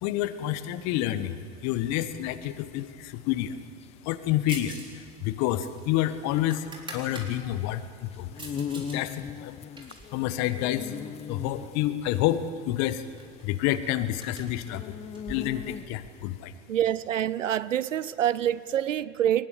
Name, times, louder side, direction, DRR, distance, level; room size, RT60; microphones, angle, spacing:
voice 1, 0.0-3.6 4.0-8.5 8.7-9.5 10.1-11.0 11.3-13.0 13.4-15.0 15.3-16.5, left 13 dB, 45° left, 1.2 m, -29 dB
sound 1, 2.0-16.2, left 7 dB, 15° left, 0.5 m, -40 dB
sound 2, 4.5-4.9 5.2-7.3 7.8-9.0 9.3-11.0 11.7-12.3 12.6-12.7 13.0-16.1, right 2 dB, 15° right, 4.1 m, -45 dB
voice 2, 16.7-19.5, right 11 dB, 85° right, 0.6 m, -26 dB
23.0 x 20.0 x 6.9 m
figure-of-eight pair, 85°, 37 cm